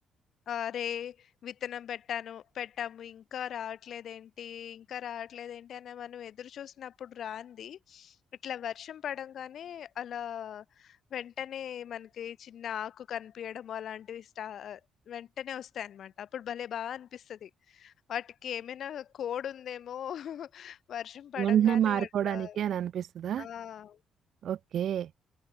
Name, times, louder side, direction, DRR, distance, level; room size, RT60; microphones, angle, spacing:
voice 1, 0.5-8.2 8.4-14.8 15.1-22.6 23.4-24.0, left 9 dB, 65° left, 3.9 m, -39 dB
voice 2, 21.4-23.5 24.4-25.1, right 10 dB, 65° right, 1.8 m, -28 dB
open air
cardioid pair, 90°, 0 cm